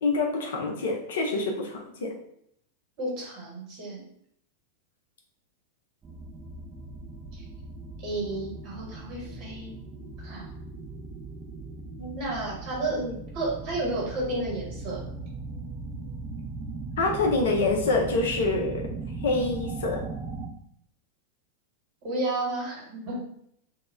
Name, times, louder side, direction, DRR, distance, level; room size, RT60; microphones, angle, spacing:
voice 1, 0.0-2.2 12.0-12.4 12.9-13.2 17.0-18.9 19.2-20.0, left 3 dB, 60° left, 1 dB, 0.4 m, -26 dB
voice 2, 3.0-4.0 7.3-7.4 8.0-9.7 10.2-10.5 12.2-13.0 13.3-15.1 22.0-23.2, right 2 dB, 45° right, -4 dB, 1.2 m, -32 dB
sound 1, 6.0-20.5, right 3 dB, 25° right, 0.4 m, -38 dB
2.1 x 2.0 x 3.3 m, 0.71 s
figure-of-eight pair, 90°, 0 cm